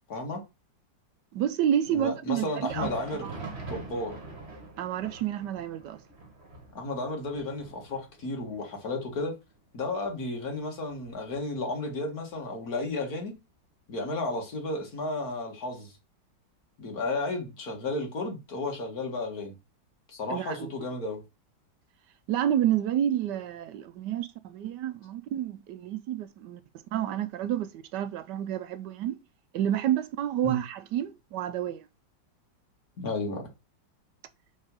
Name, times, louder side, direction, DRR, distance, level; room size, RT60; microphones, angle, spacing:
voice 1, 0.1-0.4 1.9-4.2 6.7-9.3 9.7-13.3 13.9-15.9 16.8-19.5 20.1-21.2 30.4-30.6 33.0-33.4, left 2 dB, 55° left, 2.1 m, -33 dB
voice 2, 1.3-3.3 4.8-6.0 20.3-20.7 22.3-26.6 26.9-29.2 29.5-31.9, right 10 dB, 75° right, 1.2 m, -29 dB
Thunder, 2.5-11.9 12.2-12.4 13.1-13.3 14.3-14.4, right 2 dB, 40° right, 1.5 m, -45 dB
5.5 x 3.9 x 5.2 m
omnidirectional pair, 2.0 m